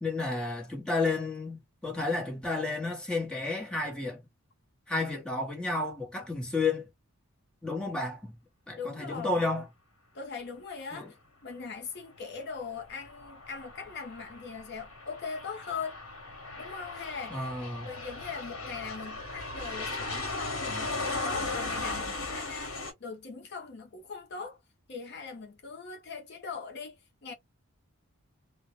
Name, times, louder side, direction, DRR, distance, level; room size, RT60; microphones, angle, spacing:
voice 1, 0.0-4.2 4.9-6.9 7.6-8.3 8.7-9.7 10.9-11.1 17.3-17.9, left 3 dB, 5° left, 0.8 m, -31 dB
voice 2, 8.8-9.4 10.1-11.2 11.4-16.0 16.6-17.5 17.8-24.6 24.9-27.3, left 5 dB, 50° left, 0.5 m, -41 dB
Aircraft, 12.7-22.9, left 3 dB, 70° left, 0.9 m, -37 dB
2.1 x 2.0 x 2.9 m
head